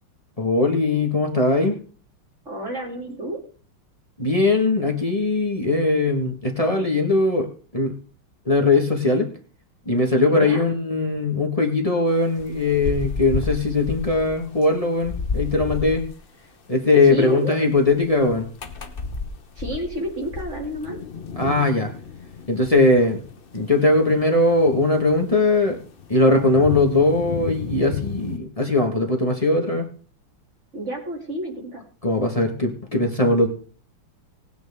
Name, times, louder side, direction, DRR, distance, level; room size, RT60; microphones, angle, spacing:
voice 1, 0.4-1.7 4.2-7.5 7.7-7.9 8.4-9.3 9.8-16.0 16.7-18.5 21.4-21.9 22.5-23.2 23.5-25.8 26.1-29.9 32.0-33.5, left 2 dB, 20° left, 2 dB, 1.4 m, -20 dB
voice 2, 2.4-3.4 10.3-10.6 17.0-17.6 19.6-21.0 30.7-31.8, right 1 dB, 35° right, 0 dB, 3.1 m, -30 dB
sound 1, 12.1-16.1 17.0-17.1 17.7-28.4, left 5 dB, 55° left, 0.6 m, -32 dB
18.5 x 9.2 x 3.6 m, 0.42 s
omnidirectional pair, 2.4 m